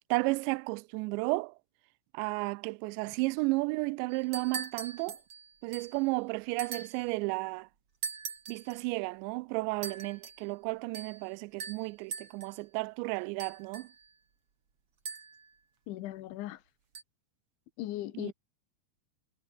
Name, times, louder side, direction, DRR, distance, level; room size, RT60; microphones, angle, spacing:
voice 1, 0.0-1.5 2.1-5.2 5.6-7.7 8.5-13.9 18.2-18.3, right 26 dB, 85° right, 2.7 m, -33 dB
sound 1, 4.1-6.0 6.6-7.1 8.0-8.8 9.8-10.5 10.9-11.3 11.6-12.6 13.4-14.1 15.1-15.5 17.0-17.1, right 6 dB, 35° right, 3.3 m, -42 dB
voice 2, 15.9-16.6 17.8-18.3, left 15 dB, 85° left, 3.8 m, -38 dB
omnidirectional pair, 5.2 m